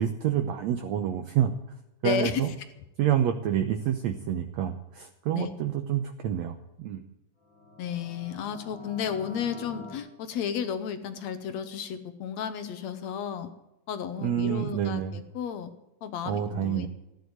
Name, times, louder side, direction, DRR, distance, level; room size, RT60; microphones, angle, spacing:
voice 1, 0.0-1.5 2.0-2.5 3.0-7.0 14.2-15.2 16.3-16.9, right 10 dB, 70° right, 6 dB, 1.8 m, -28 dB
voice 2, 2.0-2.5 5.3-5.5 7.8-13.5 13.9-15.7 16.0-16.9, left 8 dB, 65° left, 10 dB, 1.9 m, -33 dB
sound 1, 7.4-10.0, left 2 dB, 35° left, 2.5 m, -46 dB
14.5 x 9.7 x 8.1 m, 0.93 s
omnidirectional pair, 3.8 m